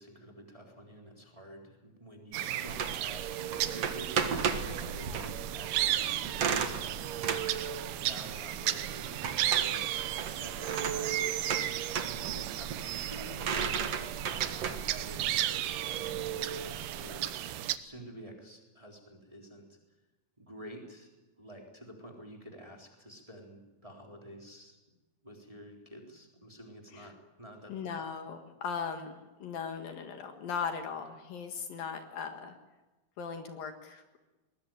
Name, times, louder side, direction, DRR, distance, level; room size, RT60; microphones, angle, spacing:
voice 1, 0.0-11.3 11.6-13.8 14.5-17.3 17.8-19.8 20.4-21.1 21.4-24.8 25.2-27.9, equal, 10° right, 1 dB, 3.4 m, -49 dB
sound 1, 2.3-17.8, right 12 dB, 80° right, 3.0 m, -34 dB
sound 2, 2.7-17.2, right 6 dB, 50° right, 2.1 m, -36 dB
voice 2, 27.7-32.6 33.2-34.0, left 6 dB, 65° left, 6 dB, 3.3 m, -38 dB
22.0 x 20.5 x 9.2 m, 1.1 s
omnidirectional pair, 4.6 m